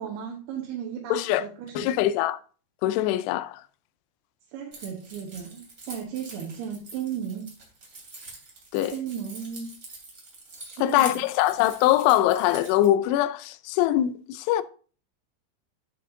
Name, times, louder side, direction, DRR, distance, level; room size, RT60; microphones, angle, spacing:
voice 1, 0.0-1.9 4.5-7.5 8.9-9.7 10.7-11.2, right 8 dB, 70° right, 3.0 m, -35 dB
voice 2, 1.1-1.4 1.8-2.4 2.8-3.6 8.7-8.9 10.8-14.6, left 13 dB, 80° left, 2.5 m, -23 dB
Keys jangling, 4.7-12.9, right 2 dB, 25° right, 2.7 m, -45 dB
9.3 x 8.4 x 2.6 m
omnidirectional pair, 5.0 m